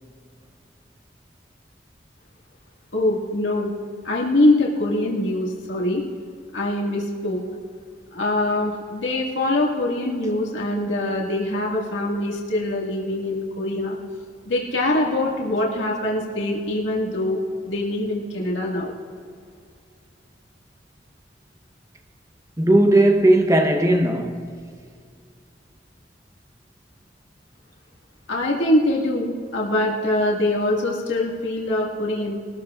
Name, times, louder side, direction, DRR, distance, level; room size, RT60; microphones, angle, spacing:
voice 1, 2.9-3.7 4.0-6.0 6.5-7.4 8.1-14.0 14.5-17.4 17.7-18.9 28.3-32.4, left 1 dB, 90° left, 1.9 m, -23 dB
voice 2, 22.6-24.6, right 1 dB, 15° right, 0.9 m, -17 dB
22.0 x 13.5 x 2.5 m
head